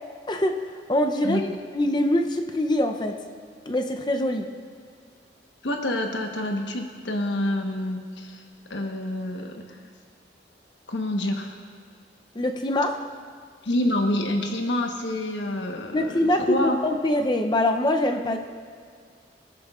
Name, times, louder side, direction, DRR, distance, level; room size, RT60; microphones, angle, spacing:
voice 1, 0.3-1.4 1.7-3.2 3.7-4.5 12.3-13.0 15.9-18.4, left 1 dB, 25° left, 5 dB, 0.5 m, -24 dB
voice 2, 1.2-1.6 5.6-8.4 8.7-9.8 10.9-11.5 13.6-16.8, left 1 dB, 90° left, 3 dB, 1.1 m, -27 dB
17.0 x 10.5 x 2.4 m, 2.1 s
head